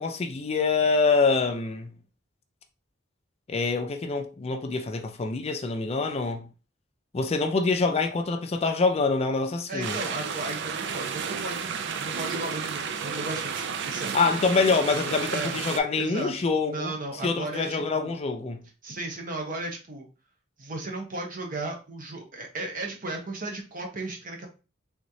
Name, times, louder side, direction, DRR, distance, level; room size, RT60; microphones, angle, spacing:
voice 1, 0.0-1.9 3.5-6.5 7.1-10.0 14.1-16.9 17.2-18.6, left 4 dB, 30° left, 0.4 m, -25 dB
voice 2, 9.7-14.2 15.3-15.6 16.0-18.2 18.8-20.1 20.6-24.5, right 2 dB, 45° right, 0.8 m, -35 dB
sound 1, 9.8-15.8, right 6 dB, 65° right, 0.4 m, -32 dB
3.5 x 3.1 x 2.7 m
head